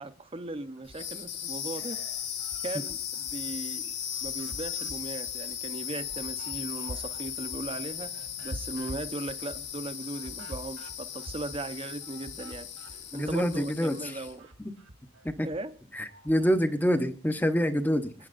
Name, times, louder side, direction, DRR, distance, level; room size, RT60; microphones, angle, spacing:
voice 1, 0.0-2.0 2.6-3.9 4.2-14.5 15.4-15.7, right 2 dB, 30° right, 0.8 m, -38 dB
sound 1, 0.8-14.4, left 9 dB, 60° left, 2.6 m, -37 dB
sound 2, 0.8-1.6 2.0-3.6 4.0-13.7 14.0-16.6, right 1 dB, 80° right, 2.2 m, -48 dB
voice 2, 13.1-14.2 14.6-14.7 15.2-15.5 15.9-18.1, equal, 10° left, 0.9 m, -27 dB
27.0 x 9.8 x 2.6 m
head